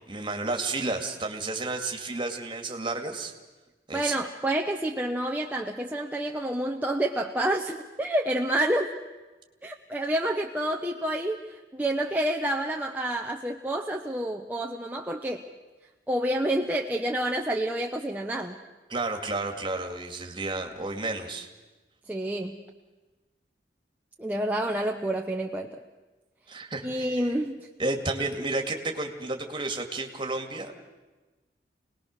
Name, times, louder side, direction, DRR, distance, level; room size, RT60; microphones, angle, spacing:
voice 1, 0.1-3.3 3.9-4.2 18.9-21.5 26.5-27.3 27.8-30.8, right 2 dB, 30° right, 4 dB, 2.3 m, -31 dB
voice 2, 3.9-8.9 9.6-15.4 16.1-18.6 22.1-22.6 24.2-25.8 26.8-27.7 28.3-28.4, right 1 dB, 10° right, 1 dB, 0.9 m, -29 dB
27.0 x 19.5 x 6.7 m, 1.2 s
head